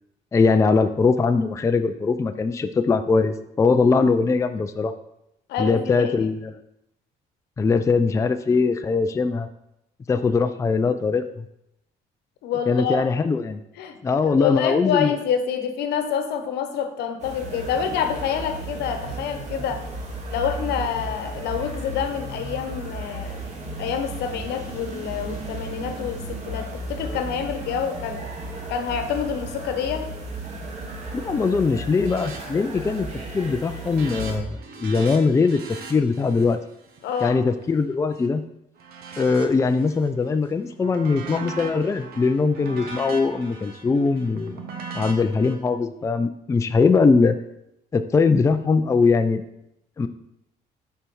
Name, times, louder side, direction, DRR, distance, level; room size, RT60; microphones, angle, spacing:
voice 1, 0.3-4.9 5.6-6.5 7.6-9.5 10.1-11.5 12.7-13.6 14.0-15.1 31.1-33.1 33.3-36.6 37.2-38.4 39.2-44.6 44.9-47.4 47.9-49.4 50.0-50.1, left 4 dB, 20° left, 9 dB, 0.4 m, -21 dB
voice 2, 5.5-6.3 12.4-13.1 13.8-19.8 20.3-23.5 23.8-28.3 28.7-30.1 37.0-37.4, left 7 dB, 80° left, 8 dB, 1.0 m, -27 dB
sound 1, 17.2-34.4, right 1 dB, 45° right, 1.8 m, -34 dB
sound 2, 31.9-32.4 32.7-33.1 33.4-38.3 38.8-40.1 40.5-45.5, right 4 dB, 65° right, 1.2 m, -40 dB
6.6 x 4.6 x 5.4 m, 0.83 s
cardioid pair, 110°, 17 cm